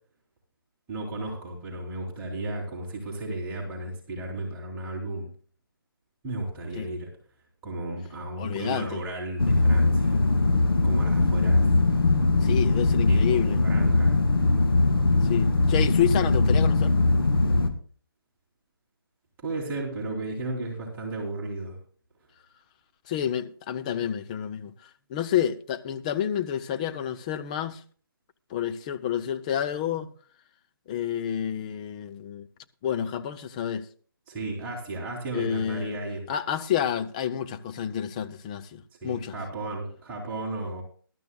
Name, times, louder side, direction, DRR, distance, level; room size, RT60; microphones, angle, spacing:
voice 1, 0.9-5.3 6.2-7.1 7.6-10.2 10.8-11.7 13.1-14.2 19.4-21.8 34.3-36.3 39.0-40.8, right 2 dB, 15° right, 2.8 m, -34 dB
voice 2, 8.4-9.0 12.4-13.6 15.2-17.0 23.1-27.8 28.5-30.1 30.9-32.5 32.8-33.9 35.3-36.0 36.3-39.3, left 9 dB, 20° left, 0.5 m, -29 dB
sound 1, 9.4-17.7, left 2 dB, 80° left, 2.0 m, -21 dB
20.0 x 12.0 x 2.2 m
figure-of-eight pair, 150°, 12 cm